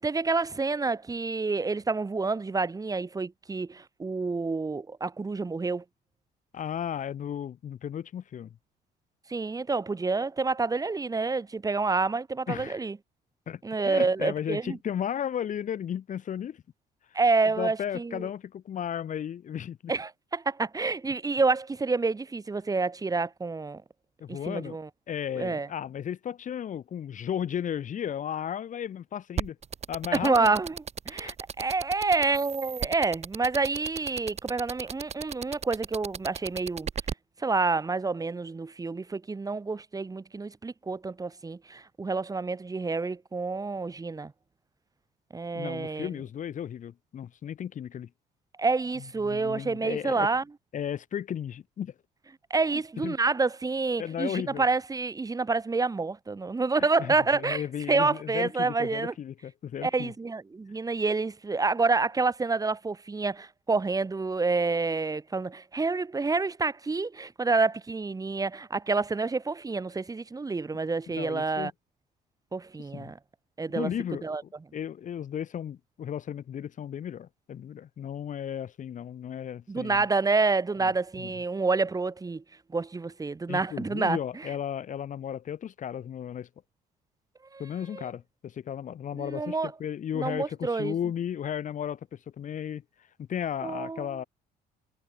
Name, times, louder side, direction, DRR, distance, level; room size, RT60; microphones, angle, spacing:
voice 1, 0.0-5.8 9.3-13.0 13.6-14.8 17.1-18.3 19.9-23.8 24.3-24.9 25.4-25.7 30.1-30.8 31.1-36.9 37.4-44.3 45.3-46.1 48.6-50.4 52.5-59.1 59.8-71.7 72.5-73.2 73.6-73.9 74.2-74.4 79.7-82.4 82.7-84.5 87.5-87.6 87.9-88.1 89.2-89.7 90.1-90.9 93.6-94.1, right 3 dB, 20° right, 3.9 m, -28 dB
voice 2, 6.5-8.6 12.5-12.8 13.5-16.6 17.6-19.9 24.2-24.8 25.1-29.6 29.9-30.5 31.1-31.3 45.5-48.1 49.2-50.3 50.7-51.9 53.0-53.2 54.0-54.7 57.0-60.1 71.2-71.7 72.8-73.1 73.8-74.2 74.7-80.1 80.8-80.9 81.2-81.3 83.5-86.5 87.6-92.8 93.2-94.2, left 9 dB, 50° left, 2.3 m, -34 dB
sound 1, 29.4-37.1, right 7 dB, 40° right, 4.8 m, -34 dB
cardioid pair, 110°, 17 cm